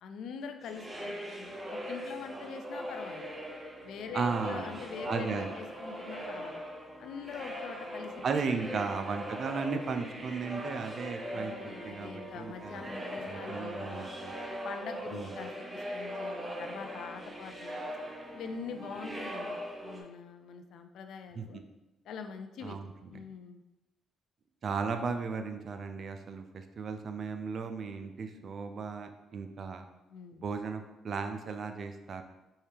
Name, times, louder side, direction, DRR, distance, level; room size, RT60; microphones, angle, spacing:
voice 1, 0.0-3.3 3.8-6.6 7.0-8.2 8.7-8.8 11.3-14.1 14.5-17.8 18.3-21.6 22.0-22.8 23.1-23.6 30.1-30.4, left 6 dB, 75° left, 7 dB, 0.4 m, -44 dB
sound 1, 0.6-20.0, equal, 25° right, 0.8 m, -40 dB
voice 2, 4.1-4.8 5.1-5.5 8.2-11.5 11.8-12.8 13.3-14.3 15.1-15.3 21.3-21.4 22.6-22.9 24.6-29.8 30.4-32.2, right 5 dB, 55° right, 7 dB, 0.4 m, -35 dB
4.5 x 3.2 x 3.4 m, 1.0 s
cardioid pair, 90°, 0 cm